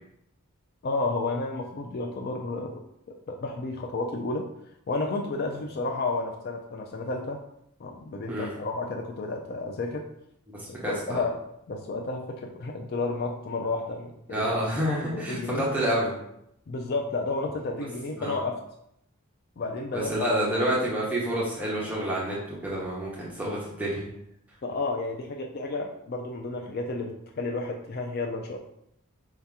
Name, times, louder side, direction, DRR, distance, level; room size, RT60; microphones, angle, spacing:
voice 1, 0.8-4.5 4.9-7.4 7.8-10.1 10.9-11.4 11.7-14.5 14.9-15.7 16.7-18.6 19.6-20.1 24.6-28.6, left 3 dB, 45° left, 2 dB, 0.3 m, -31 dB
voice 2, 10.5-11.2 14.3-16.1 18.2-18.4 19.9-24.1, right 1 dB, 5° right, -6 dB, 0.8 m, -28 dB
4.8 x 2.8 x 3.4 m, 0.77 s
head